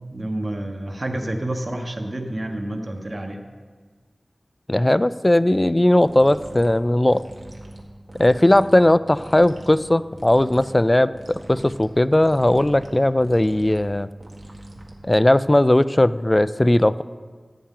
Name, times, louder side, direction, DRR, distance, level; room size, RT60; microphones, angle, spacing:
voice 1, 0.0-3.4, right 1 dB, 45° right, 3 dB, 1.2 m, -29 dB
voice 2, 4.7-7.2 8.2-11.1 11.5-14.1 15.0-17.0, left 1 dB, 25° left, 15 dB, 0.3 m, -17 dB
sound 1, 6.0-15.3, right 1 dB, 65° right, 1.7 m, -42 dB
14.5 x 8.8 x 3.8 m, 1.5 s
wide cardioid pair, 65°, 0 cm